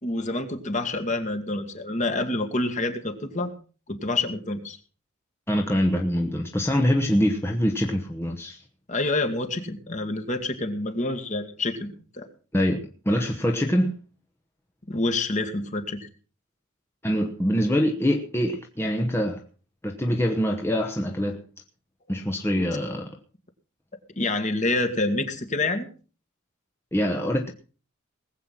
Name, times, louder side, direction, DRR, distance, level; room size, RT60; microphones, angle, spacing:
voice 1, 0.0-3.5 3.9-4.8 8.9-12.3 14.9-16.1 24.2-25.9, left 2 dB, 35° left, 2.0 m, -27 dB
voice 2, 5.5-8.6 12.5-13.9 17.0-19.4 19.8-21.4 22.1-23.2 26.9-27.5, equal, 10° left, 1.1 m, -24 dB
19.5 x 8.1 x 5.8 m
head